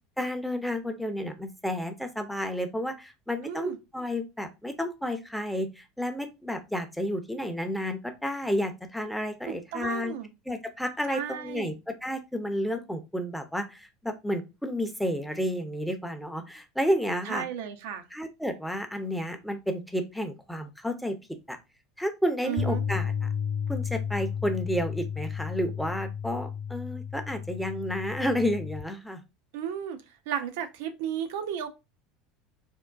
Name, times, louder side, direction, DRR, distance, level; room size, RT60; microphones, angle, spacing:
voice 1, 0.2-10.1 10.5-11.7 12.0-17.4 18.1-21.2 21.5-21.6 22.0-23.1 23.7-29.2, equal, ahead, 0.6 m, -31 dB
voice 2, 3.4-3.8 9.5-10.3 11.1-11.7 17.2-18.1 22.4-22.8 29.5-31.7, right 9 dB, 65° right, 0.5 m, -34 dB
Bass guitar, 22.6-28.8, left 7 dB, 45° left, 0.9 m, -33 dB
3.5 x 2.1 x 2.3 m
figure-of-eight pair, 75°, 0 cm